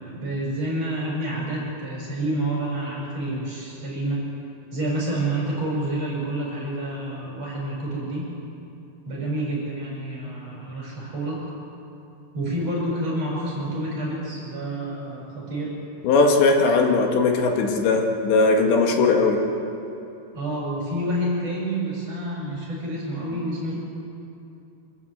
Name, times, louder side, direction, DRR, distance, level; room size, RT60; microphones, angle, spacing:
voice 1, 0.0-4.2 4.7-8.3 9.0-11.4 12.3-15.7 19.0-19.1 20.3-23.7, right 1 dB, 35° right, -3 dB, 7.4 m, -28 dB
voice 2, 16.0-19.4, left 3 dB, 80° left, 2 dB, 4.1 m, -19 dB
26.0 x 15.0 x 8.0 m, 2.8 s
omnidirectional pair, 5.0 m